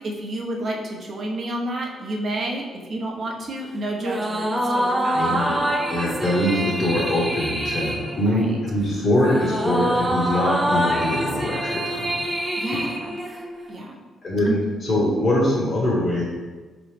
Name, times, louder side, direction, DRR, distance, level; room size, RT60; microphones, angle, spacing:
voice 1, 0.0-5.4 8.2-8.6 12.6-13.2 13.7-14.0 14.5-14.6, right 1 dB, 45° right, -1 dB, 0.8 m, -30 dB
sound 1, 4.0-13.7, equal, 15° right, 0.5 m, -25 dB
voice 2, 5.1-5.6 5.9-12.2 12.7-12.8 14.2-16.2, left 1 dB, 35° left, -6 dB, 1.1 m, -23 dB
4.6 x 3.0 x 3.4 m, 1.3 s
cardioid pair, 90°, 0 cm